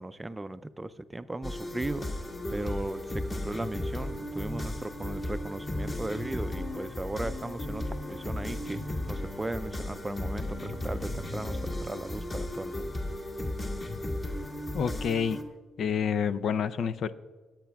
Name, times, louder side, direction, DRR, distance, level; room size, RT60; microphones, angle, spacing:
voice 1, 0.0-2.1 2.5-13.0, right 2 dB, 15° right, 12 dB, 0.4 m, -37 dB
sound 1, 1.4-15.4, left 1 dB, 35° left, 2.1 m, -35 dB
voice 2, 14.7-15.4 15.8-17.1, left 7 dB, 65° left, 14 dB, 0.4 m, -28 dB
26.0 x 8.7 x 2.3 m, 1.5 s
cardioid pair, 90°, 0 cm